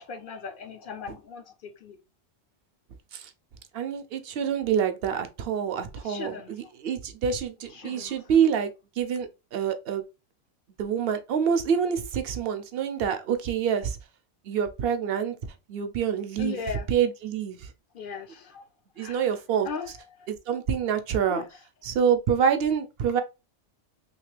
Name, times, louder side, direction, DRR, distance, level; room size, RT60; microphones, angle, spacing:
voice 1, 0.0-1.4 1.8-2.0 6.0-6.5 7.8-8.1 16.4-16.9 17.9-18.6 19.0-19.3 19.6-19.9 21.3-21.4, left 5 dB, 60° left, 0.6 m, -37 dB
voice 2, 3.7-8.7 9.0-10.0 10.8-14.0 14.4-15.4 15.7-16.6 16.9-17.7 19.0-19.7 20.3-21.4 21.8-23.2, right 7 dB, 60° right, 0.8 m, -26 dB
3.2 x 2.9 x 3.1 m
omnidirectional pair, 1.3 m